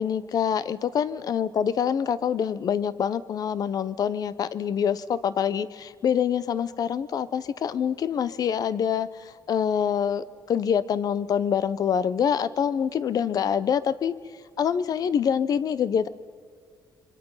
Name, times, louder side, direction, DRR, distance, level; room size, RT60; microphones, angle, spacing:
voice 1, 0.0-14.1 14.6-16.1, left 8 dB, 50° left, 17 dB, 0.8 m, -25 dB
27.0 x 23.5 x 5.7 m, 2.1 s
cardioid pair, 140°, 8 cm